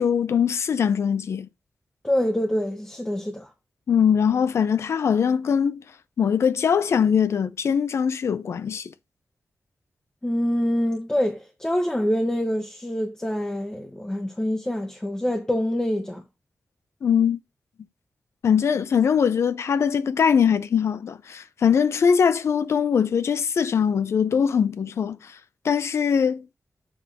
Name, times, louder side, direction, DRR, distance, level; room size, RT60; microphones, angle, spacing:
voice 1, 0.0-1.5 3.9-5.8 6.2-8.9 17.0-17.4 18.4-25.3 25.6-26.5, left 7 dB, 70° left, 0.6 m, -22 dB
voice 2, 2.0-3.5 10.2-16.2, equal, 10° left, 0.9 m, -25 dB
7.1 x 3.5 x 5.6 m
wide cardioid pair, 115°, 5 cm